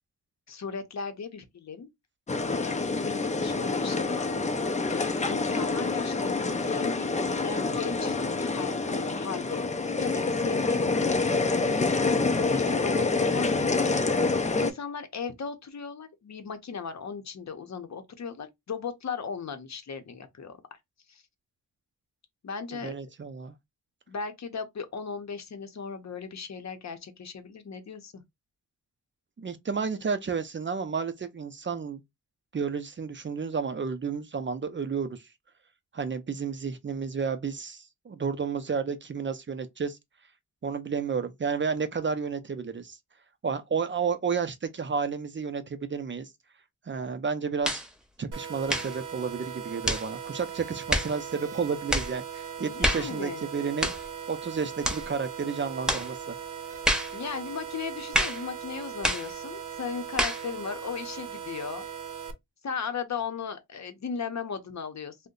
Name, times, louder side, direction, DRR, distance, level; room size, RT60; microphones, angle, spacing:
voice 1, 0.5-1.9 2.5-4.3 4.9-7.1 7.4-12.0 12.5-14.0 14.6-20.8 21.1-21.2 22.4-22.9 24.1-28.2 52.6-53.5 57.1-61.8 62.6-65.3, left 6 dB, 60° left, 0.7 m, -37 dB
sound 1, 2.3-14.7, left 3 dB, 20° left, 0.5 m, -27 dB
voice 2, 22.8-23.5 29.4-32.0 32.5-35.2 35.9-40.0 40.6-43.0 43.4-46.3 46.9-47.8 48.2-53.9 54.3-56.4, right 5 dB, 35° right, 0.5 m, -31 dB
sound 2, 47.6-47.9 48.7-49.0 49.8-50.1 50.9-51.1 51.9-52.1 52.8-53.1 53.8-54.1 54.8-55.1 55.9-56.1 56.8-57.1 58.1-58.4 59.0-59.3 60.2-60.4, equal, ahead, 0.8 m, -27 dB
sound 3, 48.3-62.3, right 8 dB, 75° right, 0.7 m, -39 dB
2.6 x 2.1 x 3.8 m
wide cardioid pair, 90°, 31 cm